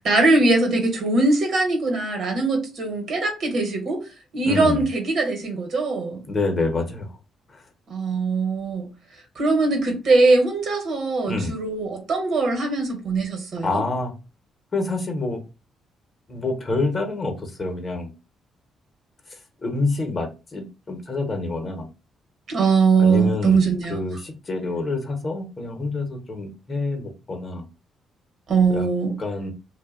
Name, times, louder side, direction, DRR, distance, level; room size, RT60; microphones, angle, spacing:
voice 1, 0.0-4.0 4.3-6.2 7.9-8.9 9.4-13.8 22.5-24.1 28.5-29.2, right 3 dB, 65° right, 0.9 m, -21 dB
voice 2, 4.5-4.9 6.3-7.2 7.5-7.6 11.3-11.5 13.6-14.1 14.7-15.4 16.3-18.1 19.3-21.9 23.0-23.6 23.9-27.6 28.7-28.9 29.2-29.5, left 3 dB, 40° left, 0.7 m, -27 dB
2.6 x 2.1 x 2.4 m
cardioid pair, 90°, 0 cm